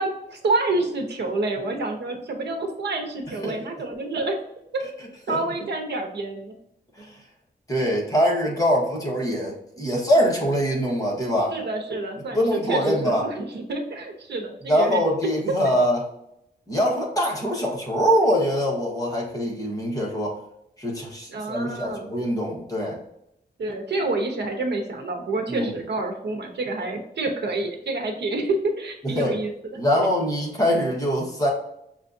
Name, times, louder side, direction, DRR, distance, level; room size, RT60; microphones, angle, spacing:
voice 1, 0.0-4.4 5.3-6.5 11.5-15.3 15.6-15.7 21.3-22.1 23.6-29.5 30.0-30.1, right 2 dB, 75° right, 4 dB, 0.8 m, -28 dB
voice 2, 7.7-11.5 12.3-13.2 14.7-16.1 16.7-20.4 20.8-23.0 25.5-25.7 29.0-29.4 29.7-31.5, equal, 20° left, -3 dB, 1.3 m, -23 dB
6.4 x 2.4 x 2.6 m, 0.79 s
wide cardioid pair, 110°, 18 cm